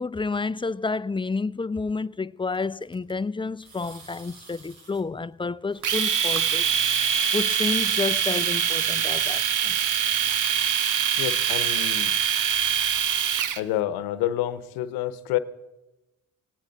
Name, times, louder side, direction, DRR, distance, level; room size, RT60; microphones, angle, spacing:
voice 1, 0.0-6.8 7.0-9.8, left 4 dB, 15° left, 0.5 m, -30 dB
sound 1, 2.5-3.1 3.6-5.0 5.7-7.2 7.7-9.1 10.3-12.5, right 4 dB, 75° right, 3.5 m, -51 dB
Domestic sounds home sounds, 5.8-13.6, right 8 dB, 60° right, 1.2 m, -24 dB
voice 2, 11.2-12.2 13.6-15.4, left 13 dB, 85° left, 1.0 m, -28 dB
18.5 x 18.0 x 4.0 m
hypercardioid pair, 45°, 36 cm